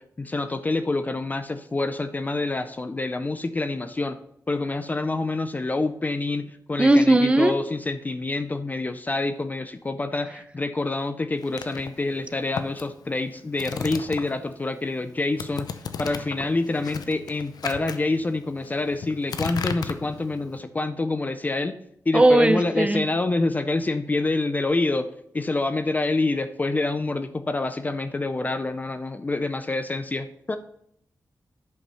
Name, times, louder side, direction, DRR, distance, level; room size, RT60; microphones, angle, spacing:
voice 1, 0.2-4.2 4.5-15.7 16.0-21.8 22.1-25.1 25.3-30.6, left 2 dB, 25° left, 10 dB, 0.5 m, -27 dB
voice 2, 6.8-7.5 22.1-23.0, right 1 dB, 15° right, 9 dB, 0.7 m, -17 dB
sound 1, 11.4-14.6 14.8-20.6, left 6 dB, 85° left, 0.7 m, -35 dB
10.5 x 5.4 x 5.5 m, 0.72 s
wide cardioid pair, 145°, 7 cm